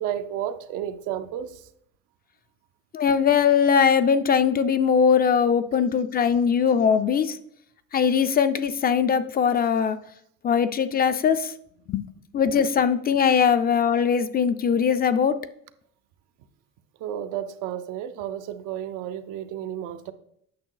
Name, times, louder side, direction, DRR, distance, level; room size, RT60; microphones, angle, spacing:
voice 1, 0.0-1.7 17.0-20.1, right 10 dB, 85° right, 9 dB, 0.7 m, -32 dB
voice 2, 2.9-7.4 7.9-10.0 10.4-11.5 11.9-12.0 12.3-15.4, left 7 dB, 30° left, 12 dB, 0.4 m, -21 dB
8.6 x 6.0 x 3.8 m, 0.71 s
cardioid pair, 125°, 31 cm